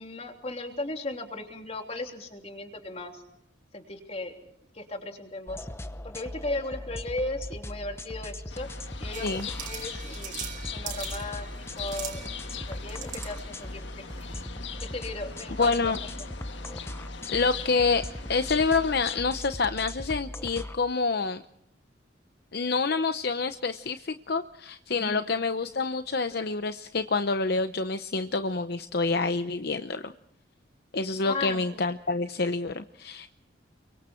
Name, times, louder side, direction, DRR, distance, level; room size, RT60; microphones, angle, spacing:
voice 1, 0.0-3.2 3.7-4.3 4.7-5.6 6.0-8.7 9.0-10.4 10.7-14.3 14.7-15.8 24.9-25.2 31.3-31.8, left 2 dB, 35° left, 4 dB, 3.2 m, -36 dB
sound 1, 5.5-20.8, left 1 dB, 15° left, 0.9 m, -39 dB
sound 2, 8.5-19.2, left 7 dB, 75° left, 1.7 m, -41 dB
sound 3, 9.1-14.4, right 7 dB, 45° right, 5.4 m, -42 dB
voice 2, 15.6-16.0 17.3-21.4 22.5-30.1 30.9-33.4, left 4 dB, 55° left, 9 dB, 0.8 m, -27 dB
29.5 x 24.0 x 4.5 m, 0.72 s
head